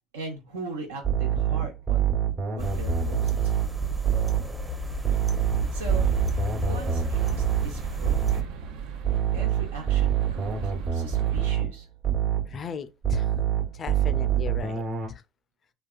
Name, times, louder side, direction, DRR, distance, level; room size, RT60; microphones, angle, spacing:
voice 1, 0.1-2.1 2.6-3.3 5.1-6.1 6.6-8.5 9.3-11.9 14.0-14.1, right 3 dB, 85° right, 1.0 m, -39 dB
sound 1, 1.0-4.6 5.0-8.6 9.0-12.6 13.0-15.1, right 10 dB, 50° right, 1.1 m, -26 dB
sound 2, 2.6-8.4, equal, 15° right, 0.7 m, -31 dB
sound 3, 5.5-11.5, right 6 dB, 70° right, 0.5 m, -38 dB
voice 2, 12.5-13.3 13.7-14.8 15.1-15.2, left 6 dB, 45° left, 0.4 m, -36 dB
3.3 x 2.3 x 2.3 m
hypercardioid pair, 70°, 0 cm